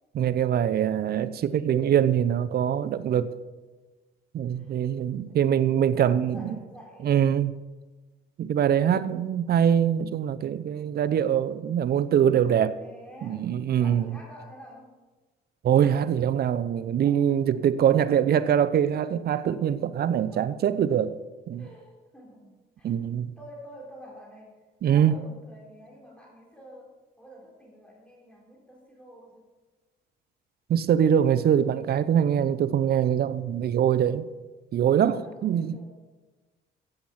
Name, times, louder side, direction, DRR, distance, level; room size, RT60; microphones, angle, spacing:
voice 1, 0.1-3.3 4.3-6.6 7.0-7.5 8.4-12.8 13.2-14.1 15.6-21.2 21.5-21.6 22.8-23.3 24.8-25.2 30.7-34.3 34.7-35.8, right 9 dB, 55° right, 0.8 m, -23 dB
voice 2, 4.5-4.9 5.3-7.1 12.7-13.5 13.7-14.9 17.1-17.6 20.1-20.5 21.6-22.9 23.4-24.6 24.9-29.5 35.1-35.9, equal, 5° left, 3.5 m, -49 dB
16.0 x 8.0 x 5.9 m
cardioid pair, 95°, 19 cm